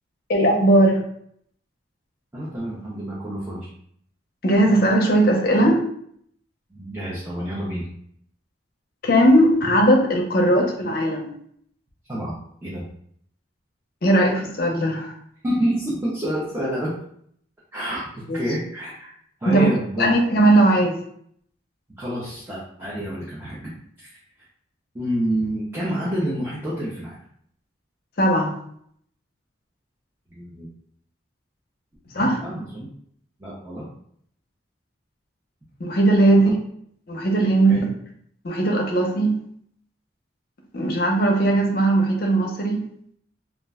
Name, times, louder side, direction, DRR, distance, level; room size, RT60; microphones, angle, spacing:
voice 1, 0.3-1.0 4.4-5.8 9.0-11.3 14.0-15.1 18.3-18.4 19.5-19.7 20.0-21.0 28.2-28.5 32.1-32.4 35.8-36.5 37.1-37.9 38.4-39.3 40.7-42.8, right 1 dB, 50° left, 1 dB, 0.5 m, -18 dB
voice 2, 2.3-3.7 6.7-7.8 12.1-12.3 12.6-12.8 15.4-17.0 17.7-18.1 18.3-19.1 19.4-20.1 22.0-23.7 24.0-24.1 24.9-27.1 30.3-30.7 32.2-32.9 33.4-33.9 36.3-36.4 37.7-37.8, equal, 10° right, -8 dB, 0.5 m, -28 dB
2.4 x 2.1 x 3.4 m, 0.66 s
head